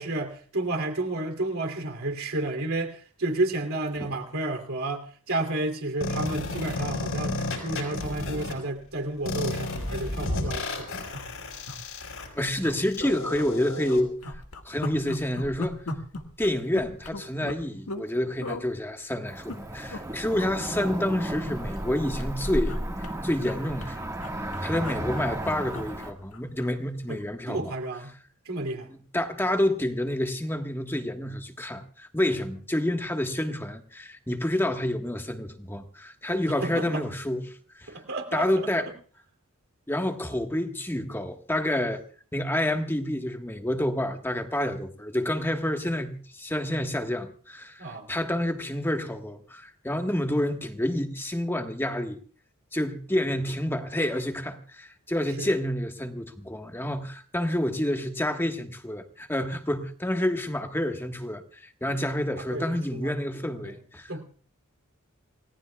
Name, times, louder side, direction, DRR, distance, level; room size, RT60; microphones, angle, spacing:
voice 1, 0.0-10.9 27.1-27.2 27.5-28.1 28.4-28.9 36.5-37.0 37.9-38.9 47.8-48.1 55.4-55.5 62.5-63.1 63.4-63.7 64.1-64.2, right 2 dB, 70° right, 2.9 m, -31 dB
sound 1, 6.0-8.5 9.3-14.0, left 2 dB, 65° left, 5.3 m, -32 dB
sound 2, 10.5-10.6 11.1-11.8 12.1-12.3 12.6-13.5 13.9-18.1 18.4-18.6 19.3-20.0 20.3-20.5 20.8-21.9 22.2-26.7 27.1-27.3, left 2 dB, 85° left, 1.7 m, -39 dB
voice 2, 12.4-14.2 14.7-15.8 16.4-22.8 23.2-24.2 24.6-27.6 29.1-37.4 37.8-37.9 38.3-38.9 39.9-42.0 42.3-52.2 52.7-64.2, left 1 dB, 10° left, 1.4 m, -28 dB
Cricket / Motor vehicle (road), 19.3-26.1, right 1 dB, 15° right, 1.6 m, -33 dB
29.0 x 18.0 x 2.3 m
head